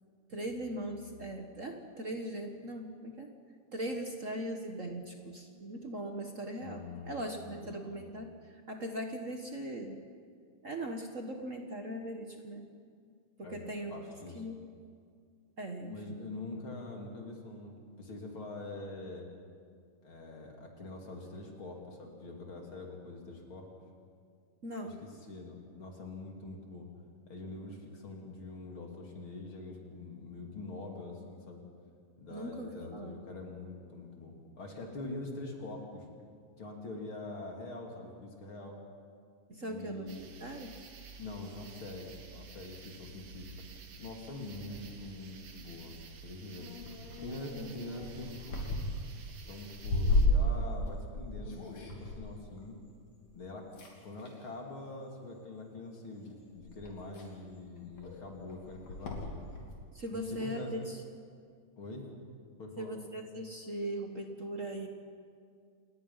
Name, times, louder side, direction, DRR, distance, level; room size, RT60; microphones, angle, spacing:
voice 1, 0.3-3.3 3.7-10.1 10.6-12.7 13.4-14.0 14.4-14.6 15.6-16.2 24.6-25.0 32.3-33.2 39.5-40.7 47.5-47.7 59.9-61.0 62.8-64.9, right 1 dB, 45° right, 3 dB, 1.0 m, -40 dB
voice 2, 6.6-8.0 13.4-13.6 13.9-14.4 15.9-19.3 20.0-23.7 24.8-26.9 27.3-31.6 32.2-36.0 36.6-38.8 39.6-40.3 41.2-43.5 44.0-46.0 46.2-46.7 47.2-48.6 49.5-52.8 53.3-53.7 54.0-59.4 60.1-60.8 61.8-62.0 62.6-63.0, left 2 dB, 45° left, 0 dB, 3.4 m, -44 dB
sound 1, 40.1-50.3, right 4 dB, 65° right, 2.8 m, -51 dB
sound 2, 46.6-53.4 53.7-54.5 55.3-55.7 56.2-56.3 56.6-59.7, left 1 dB, 65° left, 4.3 m, -34 dB
28.5 x 19.5 x 5.7 m, 2.2 s
omnidirectional pair, 3.4 m